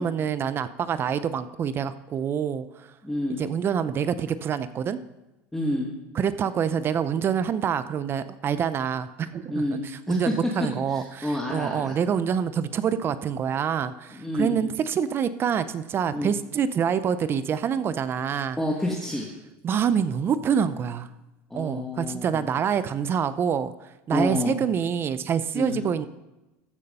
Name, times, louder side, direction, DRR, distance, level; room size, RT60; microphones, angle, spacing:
voice 1, 0.0-2.6 3.4-5.0 6.1-18.6 19.6-21.1 21.5-23.7 24.1-26.1, right 7 dB, 35° right, 14 dB, 0.6 m, -26 dB
voice 2, 3.0-3.4 5.5-5.9 9.5-10.3 10.9-12.0 14.1-14.6 16.1-16.3 18.6-19.3 21.5-22.5 24.1-24.6 25.5-25.8, left 1 dB, 5° left, -2 dB, 1.5 m, -29 dB
14.5 x 6.7 x 5.5 m, 1.0 s
supercardioid pair, 110°, 7 cm